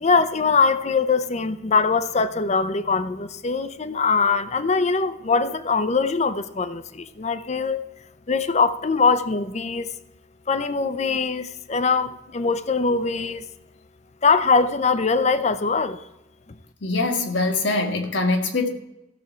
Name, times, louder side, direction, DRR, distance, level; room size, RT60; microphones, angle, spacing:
voice 1, 0.0-7.8 8.3-9.9 10.5-13.4 14.2-16.0, left 4 dB, 35° left, 0.6 m, -22 dB
voice 2, 16.8-18.7, left 3 dB, 75° left, 1.5 m, -23 dB
15.5 x 7.1 x 4.4 m
head